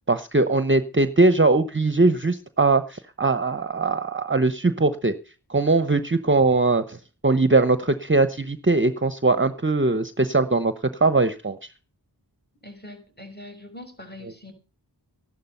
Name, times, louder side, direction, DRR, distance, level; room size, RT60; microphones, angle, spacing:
voice 1, 0.1-5.1 5.5-7.0 7.2-10.7 11.0-11.6, right 3 dB, 30° right, 12 dB, 0.9 m, -20 dB
voice 2, 12.6-14.5, left 1 dB, 25° left, 3 dB, 6.1 m, -42 dB
14.0 x 11.5 x 5.5 m, 0.36 s
wide cardioid pair, 45°, 40 cm